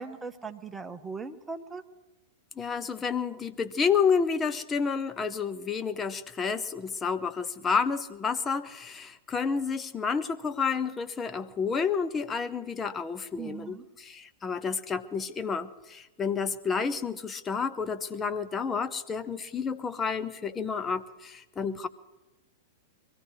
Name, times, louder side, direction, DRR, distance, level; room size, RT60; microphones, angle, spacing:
voice 1, 0.0-1.8 13.4-13.8, right 4 dB, 10° right, 7 dB, 1.1 m, -39 dB
voice 2, 2.6-21.9, left 5 dB, 20° left, 9 dB, 0.8 m, -30 dB
24.5 x 15.5 x 3.2 m, 1.0 s
figure-of-eight pair, 100°, 0 cm